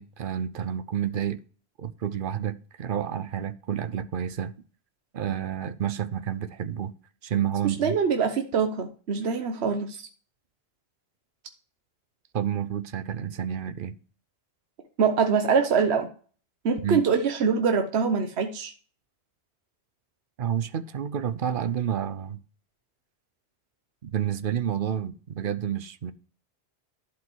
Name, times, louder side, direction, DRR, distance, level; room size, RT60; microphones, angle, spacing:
voice 1, 0.0-1.4 1.8-4.5 5.1-6.9 7.2-7.9 12.3-13.9 16.8-17.0 20.4-22.4 24.0-26.1, right 9 dB, 55° right, 0.8 m, -29 dB
voice 2, 7.6-10.1 15.0-16.1 16.6-18.7, right 5 dB, 75° right, 1.2 m, -24 dB
11.5 x 5.2 x 4.6 m
omnidirectional pair, 1.1 m